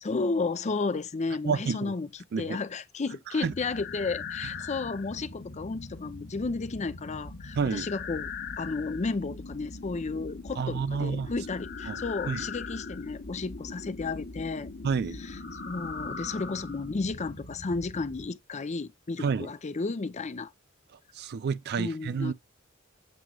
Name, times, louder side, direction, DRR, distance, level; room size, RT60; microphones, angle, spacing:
voice 1, 0.0-2.1 2.4-8.3 8.6-14.7 15.2-15.4 15.7-20.5 21.8-22.3, left 3 dB, 35° left, 0.5 m, -33 dB
voice 2, 1.4-1.9 2.3-2.6 3.4-3.5 7.6-7.9 10.6-11.3 11.9-12.0 12.3-12.4 14.8-15.2 19.2-19.5 21.1-22.3, right 5 dB, 50° right, 0.4 m, -29 dB
sound 1, 3.4-18.3, left 4 dB, 50° left, 1.2 m, -40 dB
7.6 x 3.0 x 2.3 m
head